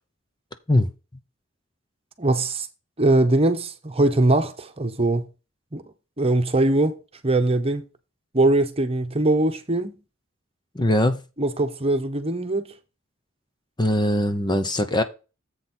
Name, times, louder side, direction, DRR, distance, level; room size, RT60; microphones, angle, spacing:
voice 1, 2.2-2.7 3.0-5.2 5.7-5.8 6.2-7.8 8.3-9.9 11.4-12.7, right 2 dB, 30° right, 1.1 m, -21 dB
voice 2, 10.7-11.2 13.8-15.0, left 1 dB, 20° left, 0.8 m, -21 dB
8.1 x 5.8 x 4.4 m
head